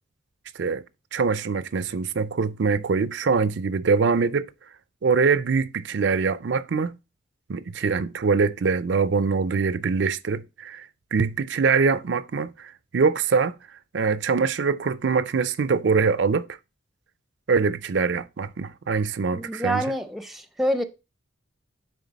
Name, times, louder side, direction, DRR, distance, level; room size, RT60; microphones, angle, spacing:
voice 1, 1.1-4.4 5.0-6.9 7.5-16.5 17.5-19.8, right 5 dB, 70° right, 0.5 m, -23 dB
voice 2, 19.3-20.8, equal, ahead, 0.6 m, -27 dB
9.9 x 3.8 x 4.0 m
head